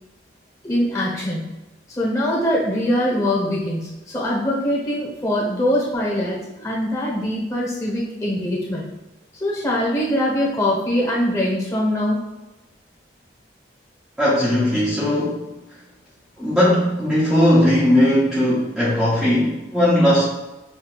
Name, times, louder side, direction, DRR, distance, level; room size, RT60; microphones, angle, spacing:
voice 1, 0.6-1.5 1.9-8.9 9.4-12.2, left 1 dB, 20° left, -5 dB, 1.2 m, -22 dB
voice 2, 14.2-15.5 16.4-20.3, left 1 dB, ahead, -10 dB, 0.7 m, -18 dB
5.9 x 2.7 x 2.4 m, 1.0 s
head